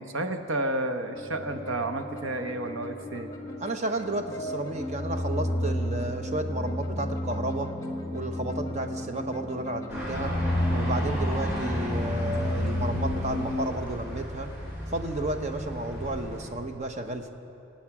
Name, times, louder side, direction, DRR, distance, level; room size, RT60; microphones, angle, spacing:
voice 1, 0.0-3.3, right 1 dB, 80° right, 7 dB, 1.0 m, -31 dB
sound 1, 1.1-13.7, left 1 dB, 15° left, 1.5 m, -32 dB
voice 2, 3.6-7.7 8.1-10.4 10.7-14.5 14.9-17.3, right 2 dB, 35° right, 6 dB, 0.9 m, -32 dB
sound 2, 9.9-16.5, equal, 10° right, 4.6 m, -34 dB
24.0 x 8.7 x 6.0 m, 2.8 s
head